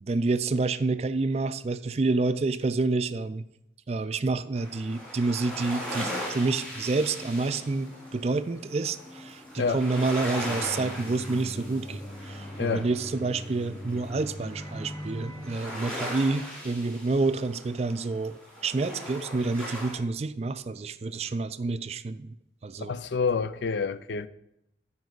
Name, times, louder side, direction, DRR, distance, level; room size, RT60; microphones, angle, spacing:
voice 1, 0.0-3.5 3.9-22.4 22.6-22.9, right 3 dB, 35° right, 0.4 m, -28 dB
sound 1, 4.5-20.0, equal, 5° left, 2.9 m, -39 dB
sound 2, 5.3-15.6, left 1 dB, 25° left, 1.2 m, -43 dB
voice 2, 22.9-24.3, left 5 dB, 80° left, 0.5 m, -28 dB
14.0 x 5.3 x 4.0 m
head